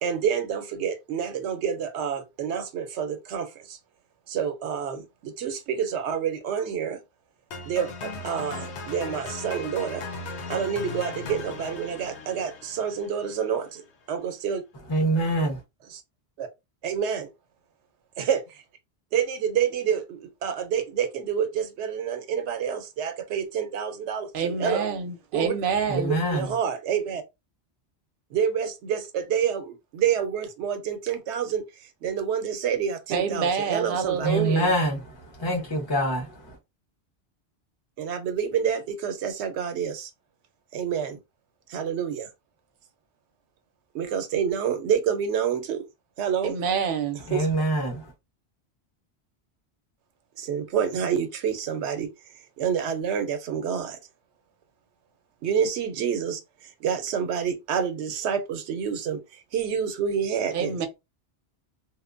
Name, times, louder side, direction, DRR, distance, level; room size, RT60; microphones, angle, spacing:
voice 1, 0.0-3.8 4.3-7.0 7.7-10.0 10.5-13.8 14.1-14.6 15.9-16.0 16.4-16.5 16.8-17.3 18.2-18.6 19.1-24.9 25.3-25.5 26.3-27.2 28.3-34.3 38.0-40.1 40.7-41.2 41.7-42.3 43.9-45.8 46.2-46.5 47.3-47.5 50.4-52.1 52.6-54.0 55.4-60.8, right 7 dB, 90° right, 0.9 m, -28 dB
sound 1, 7.5-13.6, left 4 dB, 85° left, 0.9 m, -38 dB
voice 2, 14.9-15.6 25.9-26.5 34.2-35.0 35.4-36.2 47.3-48.0, right 1 dB, 30° left, 0.5 m, -24 dB
voice 3, 24.3-26.2 33.1-34.8 46.4-47.2 60.5-60.9, right 6 dB, 60° right, 0.7 m, -27 dB
2.8 x 2.1 x 2.4 m
omnidirectional pair, 1.1 m